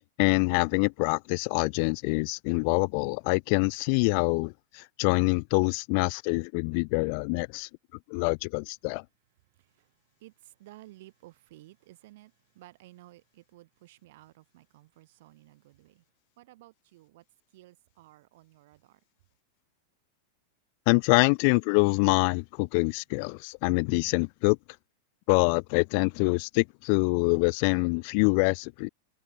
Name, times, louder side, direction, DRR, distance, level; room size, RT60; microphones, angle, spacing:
voice 1, 0.2-7.7 8.1-9.0 20.9-24.6 25.3-28.9, left 37 dB, 45° left, 0.3 m, -25 dB
voice 2, 9.4-16.0 16.4-19.0, right 18 dB, 55° right, 6.5 m, -55 dB
figure-of-eight pair, 90°, 0 cm